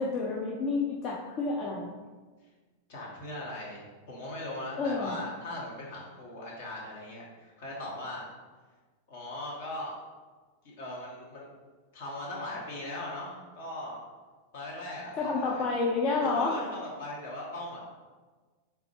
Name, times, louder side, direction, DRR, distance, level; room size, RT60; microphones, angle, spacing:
voice 1, 0.0-1.9 4.8-5.1 15.2-16.6, left 3 dB, 35° left, -3 dB, 0.5 m, -29 dB
voice 2, 2.9-8.3 9.1-9.9 10.6-11.5 11.9-14.0 14.5-15.7 16.2-17.8, left 1 dB, 55° left, -4 dB, 1.3 m, -39 dB
4.0 x 3.4 x 3.2 m, 1.4 s
figure-of-eight pair, 90°, 0 cm